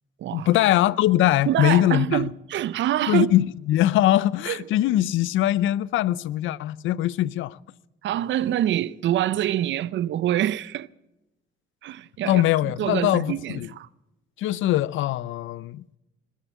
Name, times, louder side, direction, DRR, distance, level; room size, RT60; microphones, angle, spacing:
voice 1, 0.3-2.3 3.1-7.6 12.2-13.7 14.4-15.8, left 14 dB, 80° left, 0.5 m, -22 dB
voice 2, 1.5-3.3 4.5-4.6 8.0-10.9 11.8-13.9, right 12 dB, 70° right, 0.5 m, -26 dB
21.0 x 7.4 x 8.2 m
cardioid pair, 90°, 20 cm